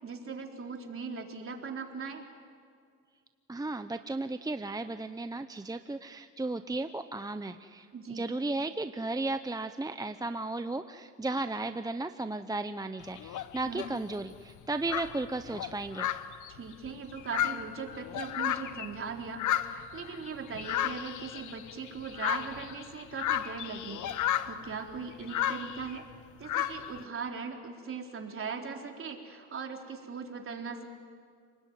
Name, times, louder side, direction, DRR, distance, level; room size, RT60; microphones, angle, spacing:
voice 1, 0.0-2.2 7.9-8.3 13.6-13.8 16.5-24.0 24.5-26.1 26.4-30.8, right 5 dB, 45° right, 2 dB, 3.9 m, -39 dB
voice 2, 3.5-16.1, right 2 dB, 10° right, 9 dB, 0.9 m, -35 dB
sound 1, 13.0-13.9 14.6-14.7 14.9-19.0 19.3-26.0 26.4-27.0, left 11 dB, 80° left, 1.2 m, -33 dB
29.5 x 20.5 x 9.5 m, 2.1 s
cardioid pair, 90°, 30 cm